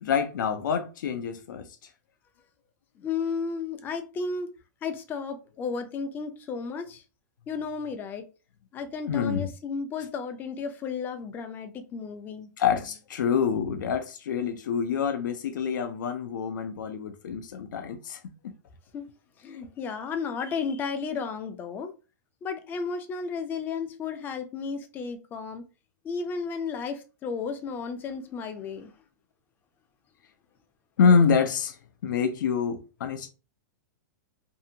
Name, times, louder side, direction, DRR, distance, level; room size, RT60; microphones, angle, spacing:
voice 1, 0.0-1.7 9.1-9.5 12.6-18.2 18.4-18.5 31.0-31.8 32.0-33.3, left 6 dB, 80° left, 0.5 m, -26 dB
voice 2, 3.0-4.5 4.8-7.0 7.5-8.2 8.7-12.5 18.9-19.1 19.4-21.9 22.4-25.6 26.0-28.9, left 5 dB, 20° left, 0.4 m, -33 dB
2.7 x 2.4 x 2.6 m
hypercardioid pair, 145°, 10 cm